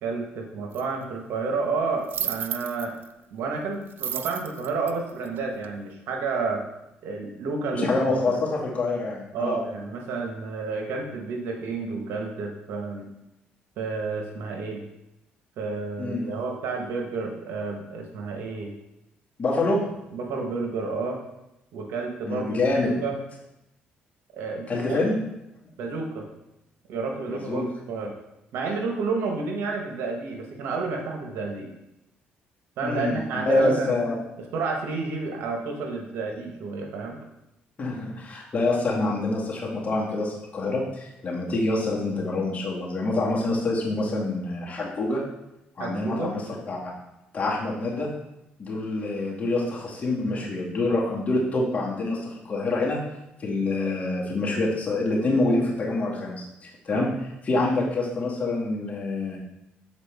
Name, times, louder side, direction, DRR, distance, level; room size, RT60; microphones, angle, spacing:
voice 1, 0.0-3.0 3.3-6.6 7.0-8.4 9.3-13.1 13.8-14.9 15.6-18.8 20.1-21.2 21.7-23.2 24.3-25.1 25.8-26.3 26.9-28.1 28.5-31.7 32.8-34.0 34.4-37.2 45.8-46.4 56.9-57.1, right 4 dB, 75° right, 2 dB, 1.2 m, -30 dB
sound 1, 0.7-0.8 2.0-3.1 3.9-5.8, right 8 dB, 60° right, 0.4 m, -32 dB
voice 2, 7.8-9.6 16.0-16.2 19.4-19.8 22.3-22.9 24.7-25.2 27.3-27.6 32.8-33.2 33.4-34.1 37.8-45.2 45.8-46.4 46.7-46.8 47.3-48.1 48.6-53.0 53.4-57.1 57.4-59.4, left 2 dB, 35° left, -4 dB, 2.1 m, -26 dB
7.4 x 4.4 x 3.5 m, 0.89 s
supercardioid pair, 75°, 4 cm